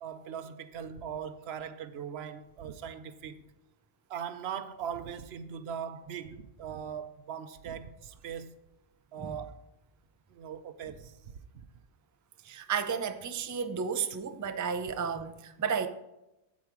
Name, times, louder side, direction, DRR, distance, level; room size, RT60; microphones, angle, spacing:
voice 1, 0.0-3.4 4.1-8.6 9.1-9.6 10.3-11.7, right 8 dB, 80° right, 0.9 m, -40 dB
voice 2, 12.4-15.9, right 6 dB, 25° right, 0.4 m, -32 dB
8.4 x 8.3 x 4.6 m
omnidirectional pair, 1.0 m